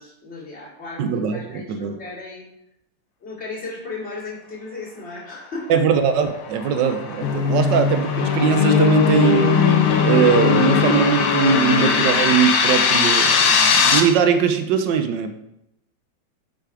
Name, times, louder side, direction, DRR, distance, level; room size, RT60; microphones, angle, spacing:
voice 1, 0.0-2.5 3.2-5.8 7.5-7.7, left 3 dB, 35° left, -7 dB, 2.6 m, -35 dB
voice 2, 1.0-2.0 5.7-9.6 10.0-15.3, right 7 dB, 80° right, 8 dB, 1.3 m, -20 dB
sound 1, 6.3-14.0, left 5 dB, 85° left, 1.6 m, -22 dB
sound 2, 7.2-12.4, left 6 dB, 65° left, 1.1 m, -20 dB
6.1 x 5.7 x 4.8 m, 0.83 s
omnidirectional pair, 2.0 m